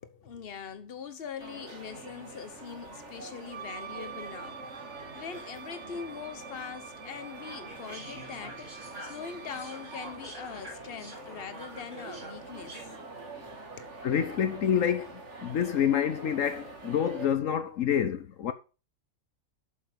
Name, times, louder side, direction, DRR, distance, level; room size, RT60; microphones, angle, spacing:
voice 1, 0.0-4.7 5.1-12.9 13.8-13.9, left 7 dB, 45° left, 1.3 m, -42 dB
sound 1, 1.4-17.3, right 3 dB, 60° right, 2.4 m, -45 dB
Wind instrument woodwind instrument, 3.5-10.3, right 7 dB, 75° right, 1.3 m, -47 dB
sound 2, 7.7-12.8, right 1 dB, 35° right, 4.1 m, -46 dB
voice 2, 14.0-18.5, left 8 dB, 75° left, 1.2 m, -27 dB
8.5 x 7.0 x 6.7 m
omnidirectional pair, 1.4 m